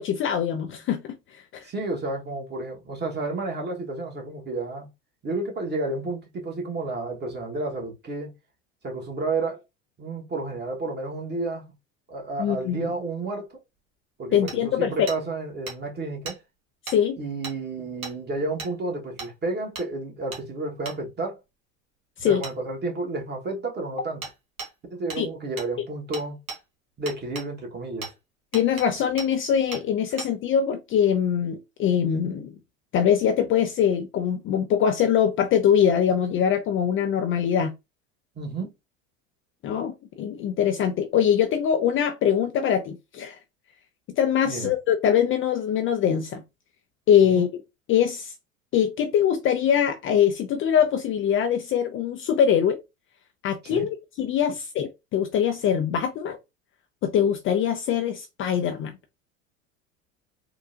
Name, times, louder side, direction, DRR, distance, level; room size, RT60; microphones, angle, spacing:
voice 1, 0.0-1.6 12.4-12.9 14.3-15.1 16.9-17.2 22.2-22.4 25.2-25.3 28.5-32.5 32.9-37.7 39.6-43.4 44.2-46.4 47.1-47.5 47.9-48.3 48.7-52.8 53.4-56.4 57.0-58.9, left 8 dB, 35° left, 0.4 m, -23 dB
voice 2, 1.6-4.9 5.2-8.3 8.8-9.6 10.0-11.7 12.1-13.5 14.2-16.4 17.2-21.4 22.2-24.2 24.9-26.4 27.0-28.1 38.4-38.7 44.4-44.7 47.3-47.4 53.6-53.9, right 2 dB, 25° right, 1.2 m, -31 dB
Hammer, 14.5-14.6 15.1-15.2 15.7-15.8 16.2-16.4 16.9-17.0 17.4-17.6 18.0-18.1 18.6-18.7 19.2-19.3 19.7-19.9 20.3-20.4 20.8-21.0 22.4-22.5 24.2-24.3 24.6-24.7 25.1-25.2 25.6-25.7 26.1-26.6 27.1-27.5 28.0-28.1 28.5-28.9 29.2-29.3 29.7-29.8 30.2-30.3, right 4 dB, 90° right, 1.2 m, -36 dB
3.8 x 2.3 x 2.5 m
hypercardioid pair, 85°, 40 cm